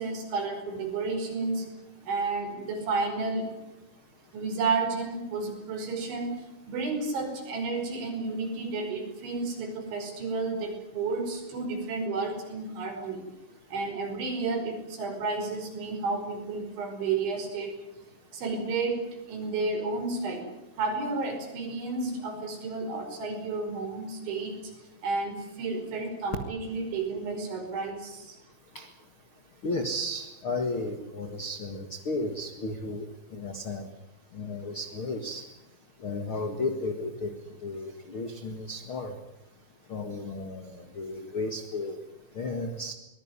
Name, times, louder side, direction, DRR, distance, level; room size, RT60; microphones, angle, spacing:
voice 1, 0.0-1.7 2.0-3.6 4.3-6.4 6.7-13.2 13.7-17.8 18.3-20.4 20.8-24.7 25.0-28.4, right 3 dB, 75° right, 4 dB, 7.5 m, -31 dB
voice 2, 29.6-33.9 34.3-35.5 36.0-37.3 37.6-39.2 39.9-42.0 42.3-42.9, left 2 dB, 65° left, 7 dB, 1.3 m, -34 dB
23.0 x 20.0 x 9.8 m, 0.91 s
omnidirectional pair, 5.4 m